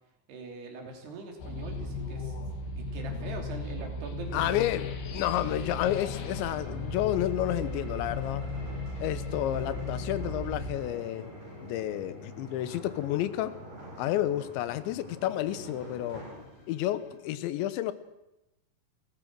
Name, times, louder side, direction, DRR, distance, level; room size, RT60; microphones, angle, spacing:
voice 1, 0.3-2.4 2.8-4.9, right 3 dB, 65° right, 3 dB, 5.0 m, -42 dB
sound 1, 1.4-10.7, left 2 dB, 70° left, 4.0 m, -36 dB
voice 2, 4.3-8.5 9.0-11.3 11.6-13.6 14.0-16.3 16.7-17.9, left 13 dB, 90° left, 14 dB, 3.3 m, -30 dB
sound 2, 5.8-17.2, left 2 dB, 40° left, 5.0 m, -48 dB
sound 3, 6.2-17.1, equal, 45° right, 8.5 m, -48 dB
30.0 x 14.5 x 6.2 m, 0.91 s
omnidirectional pair, 5.1 m